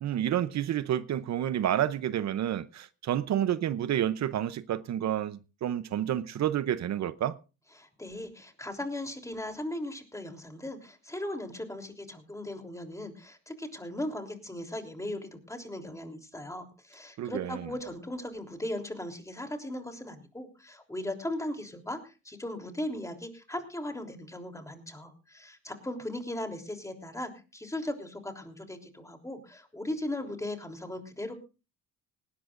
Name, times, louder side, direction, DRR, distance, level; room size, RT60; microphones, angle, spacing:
voice 1, 0.0-7.4 17.2-17.7, right 11 dB, 65° right, 0.8 m, -29 dB
voice 2, 7.8-31.3, left 1 dB, 10° left, 3.3 m, -38 dB
19.0 x 17.5 x 2.5 m
cardioid pair, 90°, 30 cm